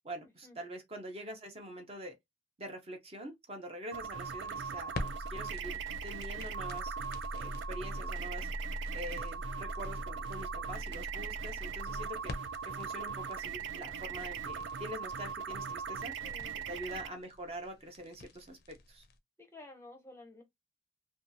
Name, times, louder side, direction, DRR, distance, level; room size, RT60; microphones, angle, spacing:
voice 1, 0.0-2.1 2.6-6.9 7.3-8.5 8.9-12.3 12.6-16.1 16.7-19.0, equal, 35° right, 0.7 m, -45 dB
sound 1, 3.9-17.1, right 6 dB, 80° right, 0.4 m, -40 dB
sound 2, 4.0-19.1, equal, 55° left, 0.5 m, -43 dB
voice 2, 16.2-16.6 19.4-20.4, left 2 dB, 15° left, 0.6 m, -52 dB
2.6 x 2.3 x 2.7 m
head